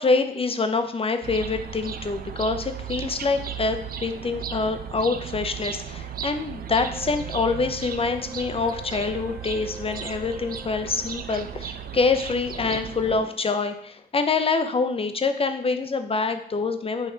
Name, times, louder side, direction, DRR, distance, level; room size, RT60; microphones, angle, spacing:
voice 1, 0.0-17.1, left 4 dB, 35° left, 8 dB, 0.7 m, -25 dB
sound 1, 1.2-13.2, right 8 dB, 60° right, 0.5 m, -36 dB
Wind instrument woodwind instrument, 6.7-11.5, equal, 5° right, 0.8 m, -46 dB
5.6 x 3.1 x 5.5 m, 0.64 s
cardioid pair, 70°, 17 cm